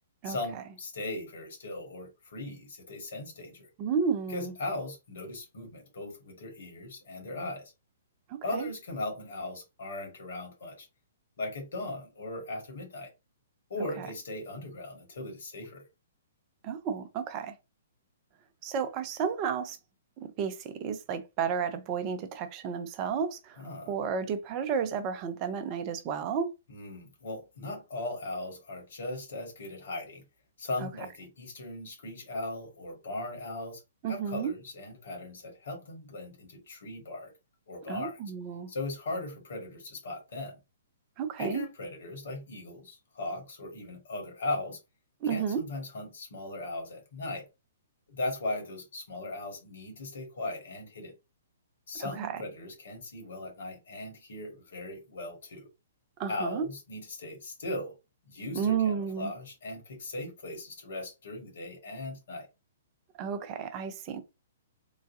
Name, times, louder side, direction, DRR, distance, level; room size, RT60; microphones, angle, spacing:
voice 1, 0.2-3.7 4.3-7.7 8.4-10.9 11.4-13.1 13.7-15.8 23.6-23.9 26.7-30.2 30.6-37.3 37.7-38.2 38.7-40.6 41.4-44.8 45.2-47.5 48.1-51.1 51.9-55.7 56.3-57.9 58.3-62.5, left 2 dB, 65° left, 1.6 m, -38 dB
voice 2, 3.8-4.5 8.3-8.7 14.0-14.1 16.6-17.5 18.6-19.8 20.2-26.5 30.8-30.9 34.0-34.5 37.9-38.7 41.2-41.6 45.2-45.6 52.0-52.4 56.2-56.6 58.5-59.3 63.2-64.2, right 6 dB, 35° right, 0.6 m, -32 dB
3.9 x 2.2 x 2.7 m
figure-of-eight pair, 120°, 0 cm